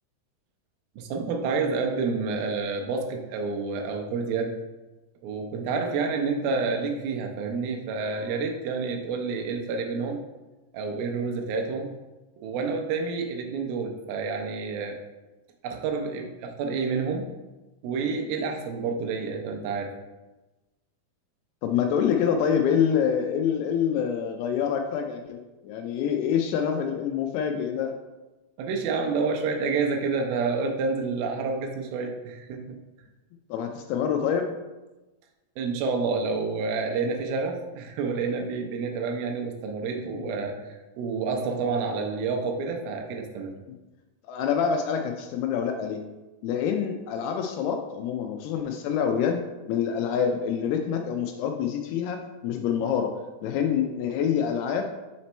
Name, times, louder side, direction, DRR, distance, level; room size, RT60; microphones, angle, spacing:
voice 1, 1.0-4.5 5.2-10.2 10.7-11.9 12.4-15.0 15.6-17.3 17.8-19.9 28.6-32.8 35.6-40.5 41.0-43.5, right 4 dB, 80° right, 3 dB, 2.2 m, -29 dB
voice 2, 21.6-27.9 33.5-34.5 40.1-40.3 44.2-46.0 46.4-49.4 49.7-53.2 53.4-54.9, left 7 dB, 85° left, 4 dB, 2.3 m, -26 dB
5.9 x 4.3 x 4.2 m, 1.1 s
omnidirectional pair, 4.9 m